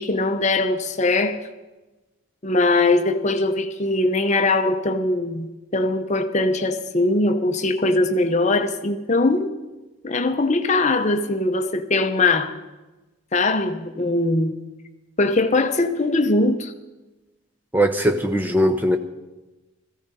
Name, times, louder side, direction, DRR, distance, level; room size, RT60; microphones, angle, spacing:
voice 1, 0.0-1.4 2.4-9.5 10.0-12.5 13.3-14.6 15.2-16.7, left 2 dB, 35° left, 0.8 m, -21 dB
voice 2, 17.7-19.0, equal, 10° right, 0.7 m, -19 dB
17.0 x 14.5 x 4.2 m
head